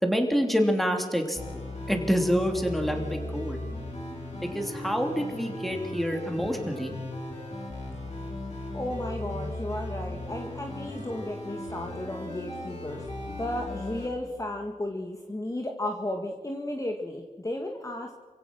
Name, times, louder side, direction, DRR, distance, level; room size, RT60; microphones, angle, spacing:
voice 1, 0.0-1.4 1.9-3.6 4.4-6.9, equal, ahead, 4 dB, 3.3 m, -27 dB
sound 1, 1.4-14.1, left 1 dB, 50° left, 6.6 m, -37 dB
voice 2, 8.7-13.0 13.4-18.1, left 1 dB, 20° left, 2 dB, 1.9 m, -34 dB
27.5 x 16.5 x 6.4 m, 1.4 s
wide cardioid pair, 80°, 15 cm